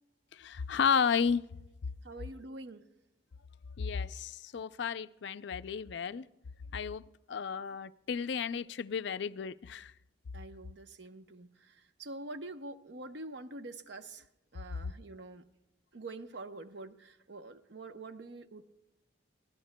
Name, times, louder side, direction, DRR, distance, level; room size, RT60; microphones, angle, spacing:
voice 1, 0.3-1.4 3.8-6.3 6.7-7.0 7.3-9.9, left 6 dB, 65° left, 0.4 m, -32 dB
voice 2, 2.0-2.8 10.3-14.3 14.5-15.5 15.9-18.6, right 2 dB, 65° right, 0.8 m, -46 dB
23.0 x 16.0 x 2.2 m
head